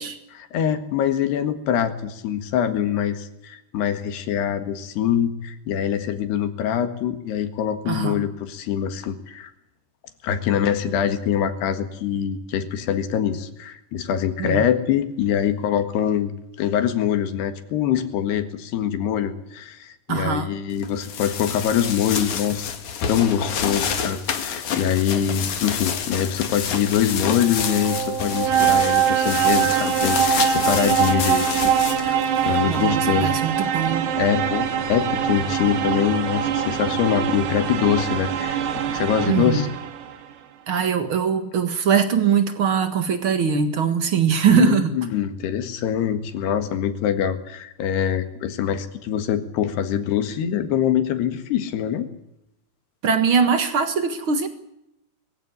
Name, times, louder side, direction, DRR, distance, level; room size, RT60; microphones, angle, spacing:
voice 1, 0.4-9.5 10.2-16.3 16.6-22.7 23.1-32.2 32.5-33.3 34.2-38.6 38.9-39.7 44.5-52.1, left 9 dB, 75° left, 9 dB, 3.7 m, -24 dB
voice 2, 7.9-8.3 14.4-14.6 20.1-20.5 32.7-34.1 39.3-39.7 40.7-45.0 53.0-54.5, right 7 dB, 65° right, 9 dB, 1.3 m, -21 dB
sound 1, 20.8-33.3, left 7 dB, 50° left, 2.8 m, -29 dB
sound 2, 27.3-40.1, right 8 dB, 85° right, 4.0 m, -23 dB
22.0 x 15.5 x 9.8 m, 0.83 s
omnidirectional pair, 5.0 m